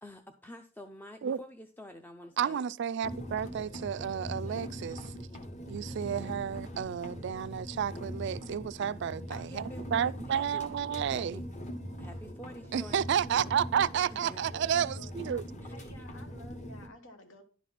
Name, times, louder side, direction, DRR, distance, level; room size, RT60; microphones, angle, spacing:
voice 1, 0.0-2.6 3.4-3.5 9.3-10.6 11.1-11.4 12.0-13.1 14.1-14.6 15.6-16.0, left 1 dB, 10° left, 0.4 m, -48 dB
voice 2, 2.4-5.1 5.7-11.4 12.7-15.4, right 8 dB, 60° right, 0.3 m, -31 dB
sound 1, 3.0-16.9, equal, 35° left, 1.2 m, -42 dB
voice 3, 14.1-15.2 15.7-17.4, left 2 dB, 75° left, 1.1 m, -52 dB
10.5 x 4.1 x 5.8 m
head